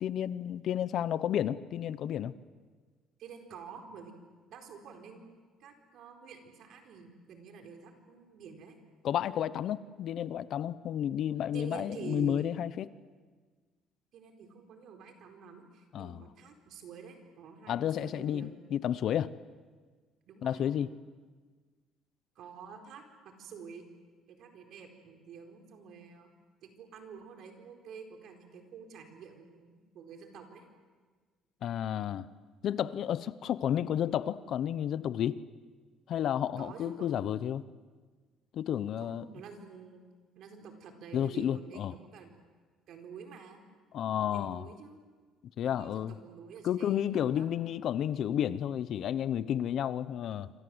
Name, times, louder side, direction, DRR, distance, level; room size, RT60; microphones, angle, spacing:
voice 1, 0.0-2.3 9.0-12.9 15.9-16.2 17.7-19.3 20.4-20.9 31.6-32.3 32.6-35.4 36.1-37.6 38.5-39.2 41.1-41.9 43.9-44.6 45.6-46.1 46.6-50.5, left 10 dB, 50° left, 16 dB, 0.8 m, -31 dB
voice 2, 3.2-4.1 4.5-8.8 11.5-12.5 14.1-18.5 20.3-20.6 22.4-23.8 24.3-26.3 26.6-30.6 36.6-37.1 39.0-40.1 40.3-42.3 42.9-43.6 44.3-45.0 45.6-47.5, right 6 dB, 60° right, 4 dB, 4.5 m, -48 dB
27.0 x 26.5 x 8.0 m, 1.4 s
cardioid pair, 145°, 0 cm